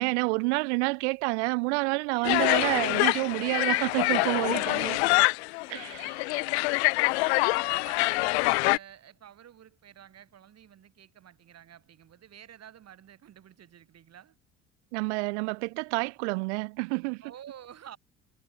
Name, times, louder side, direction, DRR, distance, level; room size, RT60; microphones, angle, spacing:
voice 1, 0.0-5.0 5.7-6.1 14.9-17.2, right 29 dB, 60° right, 1.4 m, -28 dB
sound 1, 2.2-8.8, left 27 dB, 60° left, 0.5 m, -25 dB
voice 2, 4.5-5.4 5.6-6.6 7.1-14.4 17.2-18.0, right 10 dB, 40° right, 3.9 m, -51 dB
figure-of-eight pair, 55°, 38 cm